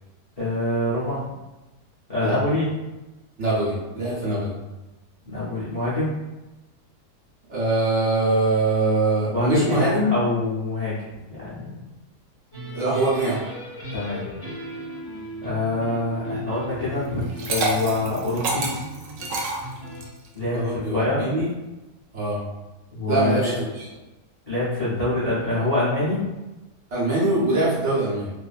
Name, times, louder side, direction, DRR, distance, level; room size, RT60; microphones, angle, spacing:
voice 1, 0.4-1.2 2.1-2.7 5.2-6.1 9.3-11.0 11.4-11.8 13.9-14.2 15.4-18.7 20.3-21.3 22.9-23.5 24.5-26.3, left 2 dB, 70° left, -10 dB, 0.3 m, -25 dB
voice 2, 3.4-4.5 7.5-10.1 12.7-13.5 20.5-21.5 22.1-22.4 23.1-23.9 26.9-28.3, right 2 dB, 50° right, -8 dB, 1.1 m, -23 dB
sound 1, 12.5-20.1, equal, 25° left, 0.6 m, -36 dB
Liquid, 17.2-20.3, right 2 dB, 75° right, 0.7 m, -27 dB
2.7 x 2.5 x 2.3 m, 1.1 s
omnidirectional pair, 1.8 m